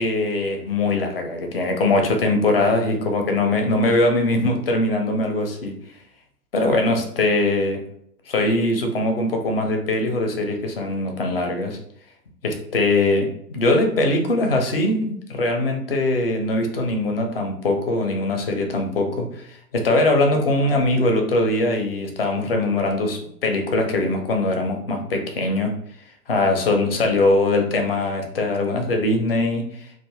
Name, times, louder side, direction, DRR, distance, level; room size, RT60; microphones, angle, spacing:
voice 1, 0.0-5.7 6.5-7.8 8.3-11.8 12.4-25.7 26.3-29.6, left 2 dB, 40° left, 4 dB, 0.4 m, -21 dB
2.3 x 2.0 x 3.0 m, 0.72 s
figure-of-eight pair, 120°, 48 cm